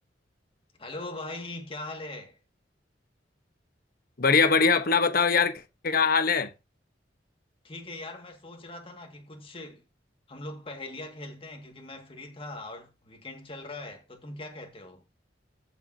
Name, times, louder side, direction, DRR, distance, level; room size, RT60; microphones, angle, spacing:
voice 1, 0.8-2.4 7.6-9.8 10.3-15.0, left 2 dB, 30° left, 2.0 m, -41 dB
voice 2, 4.2-6.5, left 5 dB, 50° left, 1.1 m, -22 dB
14.5 x 6.9 x 2.8 m
head